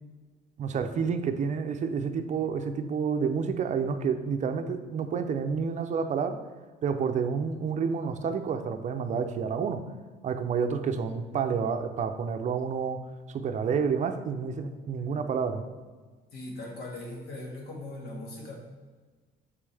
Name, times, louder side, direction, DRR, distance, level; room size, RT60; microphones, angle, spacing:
voice 1, 0.6-6.4 6.8-9.8 10.2-13.0 13.3-15.6, right 6 dB, 45° right, 8 dB, 0.5 m, -29 dB
voice 2, 16.3-18.6, left 1 dB, 70° left, -1 dB, 1.9 m, -39 dB
6.8 x 5.4 x 3.4 m, 1.4 s
cardioid pair, 110°, 17 cm